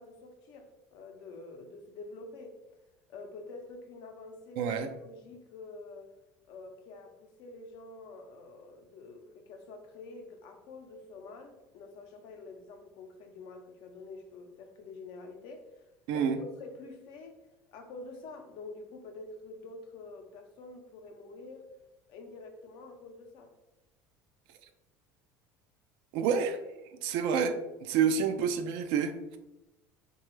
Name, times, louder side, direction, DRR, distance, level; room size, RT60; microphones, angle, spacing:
voice 1, 0.0-2.6 3.1-6.1 6.5-15.9 16.1-17.4 17.7-21.7 22.1-23.5, left 3 dB, 65° left, 0.6 m, -47 dB
voice 2, 4.6-4.9 16.1-16.4 26.1-26.6 27.0-29.4, right 6 dB, 70° right, 0.4 m, -28 dB
3.1 x 2.3 x 3.0 m
hypercardioid pair, 85°, 8 cm